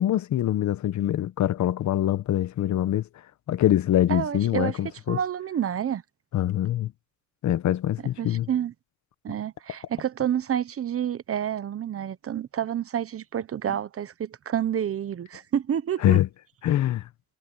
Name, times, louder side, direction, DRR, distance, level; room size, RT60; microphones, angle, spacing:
voice 1, 0.0-3.1 3.5-5.2 6.3-6.9 7.4-8.5 16.0-16.3 16.6-17.1, left 12 dB, 70° left, 1.1 m, -24 dB
voice 2, 4.1-4.8 5.1-6.0 8.2-8.7 9.2-16.2, right 9 dB, 50° right, 1.1 m, -29 dB
cardioid pair, 90°, 30 cm